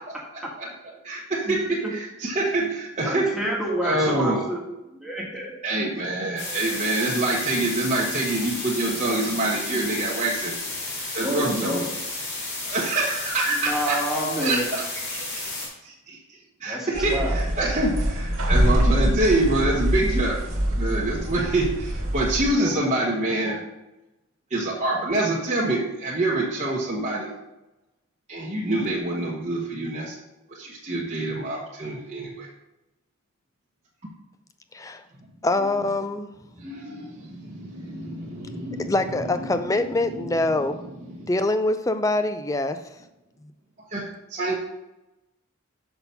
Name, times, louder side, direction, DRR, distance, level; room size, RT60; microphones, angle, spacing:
voice 1, 1.0-3.3 3.8-4.4 5.6-10.6 10.9-11.8 12.6-20.4 20.7-23.6 24.5-27.3 28.3-30.2 30.5-32.5 34.0-34.1 36.6-41.3 43.9-44.5, right 2 dB, 30° right, -6 dB, 1.1 m, -26 dB
voice 2, 3.0-4.6 4.9-5.5 11.2-11.9 13.5-14.8 16.6-17.4 22.6-22.7, equal, ahead, -4 dB, 1.6 m, -28 dB
sound 1, 6.4-15.7, left 2 dB, 50° left, 2.9 m, -32 dB
sound 2, 16.9-22.5, equal, 80° right, 1.8 m, -24 dB
voice 3, 35.4-36.3 38.8-40.8 41.3-42.8, left 2 dB, 15° left, 9 dB, 0.4 m, -24 dB
5.9 x 5.8 x 5.5 m, 0.97 s
head